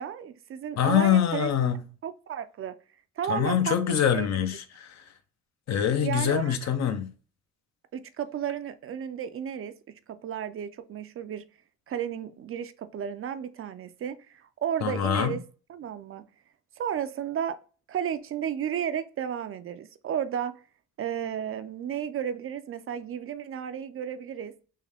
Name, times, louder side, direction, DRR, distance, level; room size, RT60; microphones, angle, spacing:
voice 1, 0.0-1.5 2.0-2.7 3.2-4.5 6.0-6.6 7.9-11.4 11.9-15.4 15.7-16.3 16.8-17.6 17.9-20.6 21.0-24.5, right 9 dB, 45° right, 0.4 m, -33 dB
voice 2, 0.8-1.8 3.3-5.0 5.7-7.1 14.8-15.4, left 9 dB, 60° left, 0.7 m, -24 dB
3.6 x 2.7 x 3.4 m
cardioid pair, 90°, 30 cm